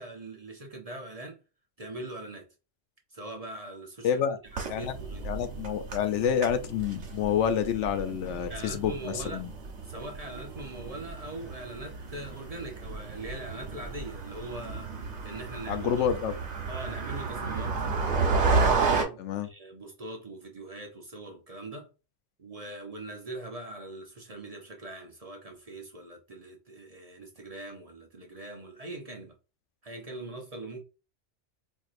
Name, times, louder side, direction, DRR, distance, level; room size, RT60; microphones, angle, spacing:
voice 1, 0.0-1.4 1.8-2.5 3.1-4.2 4.5-5.2 8.5-9.5 9.8-16.0 16.7-17.9 18.8-21.9 22.4-29.4 29.8-30.8, right 2 dB, 40° right, 0.6 m, -41 dB
voice 2, 4.0-4.4 4.7-4.9 5.2-9.5 15.7-16.3 19.2-19.5, left 8 dB, 80° left, 0.9 m, -28 dB
sound 1, 4.5-19.0, right 4 dB, 70° right, 1.3 m, -32 dB
4.5 x 2.6 x 2.5 m
omnidirectional pair, 1.2 m